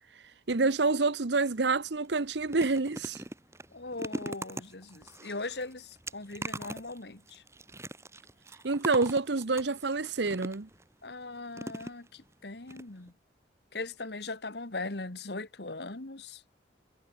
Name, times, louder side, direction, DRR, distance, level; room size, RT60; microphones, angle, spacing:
voice 1, 0.5-3.2 8.6-10.7, right 3 dB, 75° right, 1.0 m, -27 dB
sound 1, 1.5-1.7 2.0-10.8 11.5-12.3 12.7-12.8 13.1-13.2, right 1 dB, 15° right, 2.4 m, -42 dB
voice 2, 3.7-7.4 11.0-13.1 13.7-16.4, left 3 dB, 65° left, 1.8 m, -39 dB
head